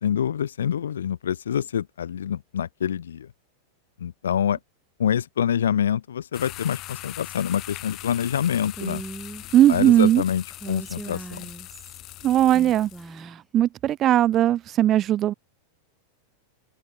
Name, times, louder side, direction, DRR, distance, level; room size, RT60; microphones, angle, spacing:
voice 1, 0.0-3.3 4.0-4.6 5.0-9.0 9.7-11.5, left 9 dB, 65° left, 1.5 m, -26 dB
sound 1, 6.3-13.1, left 17 dB, 35° left, 2.2 m, -41 dB
Female speech woman speaking, 8.7-9.4 10.5-12.0 12.5-13.4, right 2 dB, 5° right, 2.8 m, -39 dB
voice 2, 9.5-10.2 12.2-12.9 13.2-15.3, right 12 dB, 30° right, 0.5 m, -19 dB
open air
figure-of-eight pair, 90°, 0 cm